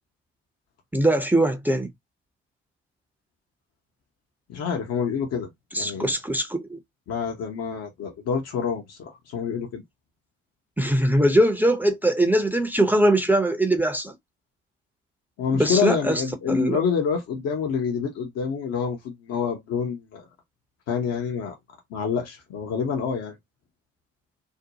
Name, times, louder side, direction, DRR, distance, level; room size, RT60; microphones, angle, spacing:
voice 1, 0.9-1.9 5.7-6.8 10.8-14.1 15.5-16.2 16.5-16.8, right 1 dB, 5° right, 0.6 m, -21 dB
voice 2, 4.5-5.5 5.8-6.1 7.1-9.8 15.4-20.3 20.9-21.5 21.9-23.4, left 6 dB, 50° left, 0.8 m, -27 dB
2.7 x 2.1 x 2.7 m
figure-of-eight pair, 45°, 32 cm